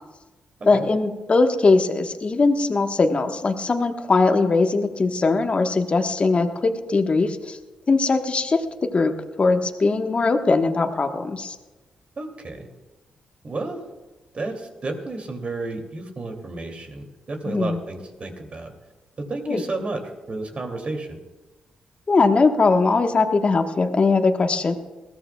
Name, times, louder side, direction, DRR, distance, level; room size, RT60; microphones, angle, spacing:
voice 1, 0.7-7.6 7.9-8.6 8.9-9.1 9.4-11.6 17.5-17.8 19.5-19.6 22.1-24.7, left 3 dB, 45° left, 5 dB, 1.3 m, -20 dB
voice 2, 12.2-12.7 13.4-13.8 14.3-18.7 19.2-20.0 20.3-21.2, right 2 dB, 45° right, 4 dB, 2.7 m, -32 dB
21.0 x 15.0 x 2.3 m, 1.2 s
hypercardioid pair, 40°, 3 cm